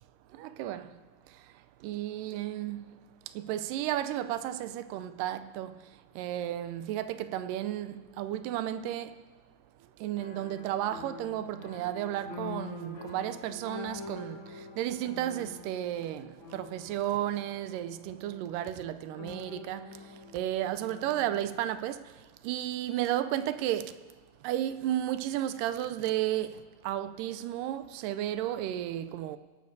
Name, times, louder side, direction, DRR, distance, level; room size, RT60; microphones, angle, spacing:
voice 1, 0.4-0.9 1.8-2.8 3.4-5.7 6.2-9.1 10.0-14.4 14.8-19.8 20.3-22.0 22.4-23.9 24.4-26.5 26.8-29.4, right 12 dB, 85° right, 2.2 m, -33 dB
sound 1, 10.2-21.4, left 3 dB, 50° left, 1.5 m, -46 dB
24.5 x 12.0 x 2.7 m
omnidirectional pair, 3.9 m